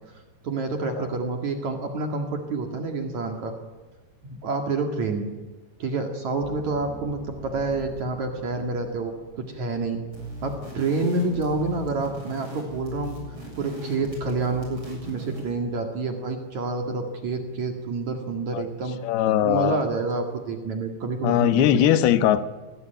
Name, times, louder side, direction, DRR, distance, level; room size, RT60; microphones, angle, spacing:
voice 1, 0.4-3.6 4.2-5.3 5.8-10.0 10.4-13.2 13.6-19.0 19.4-21.9, right 3 dB, 50° right, 4 dB, 2.8 m, -28 dB
sound 1, 6.4-11.5, right 2 dB, 80° right, 9.3 m, -45 dB
sound 2, 10.1-15.6, equal, 25° right, 8.0 m, -39 dB
voice 2, 19.0-19.8 21.2-22.4, left 11 dB, 70° left, 11 dB, 2.9 m, -20 dB
26.0 x 19.5 x 9.2 m, 1.2 s
omnidirectional pair, 5.0 m